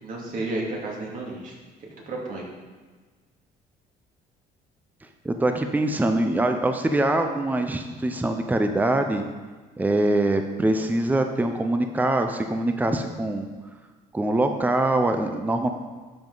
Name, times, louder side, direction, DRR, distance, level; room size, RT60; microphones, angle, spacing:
voice 1, 0.0-2.5, right 2 dB, 55° right, -2 dB, 2.5 m, -32 dB
voice 2, 5.2-9.3 9.8-13.5 14.1-15.7, right 2 dB, 10° right, 6 dB, 0.7 m, -23 dB
12.0 x 5.6 x 4.0 m, 1.4 s
cardioid pair, 110°, 17 cm